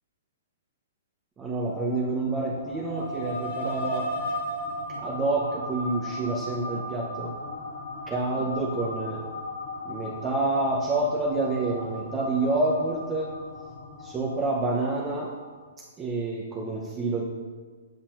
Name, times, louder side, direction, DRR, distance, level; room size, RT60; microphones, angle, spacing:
voice 1, 1.4-4.1 4.9-7.3 8.1-9.2 9.8-13.3 14.0-15.3 16.0-17.2, right 2 dB, 20° right, -3 dB, 0.8 m, -28 dB
sound 1, 1.7-15.6, left 1 dB, 50° left, 1.2 m, -37 dB
8.8 x 5.5 x 2.6 m, 1.5 s
figure-of-eight pair, 115°, 0 cm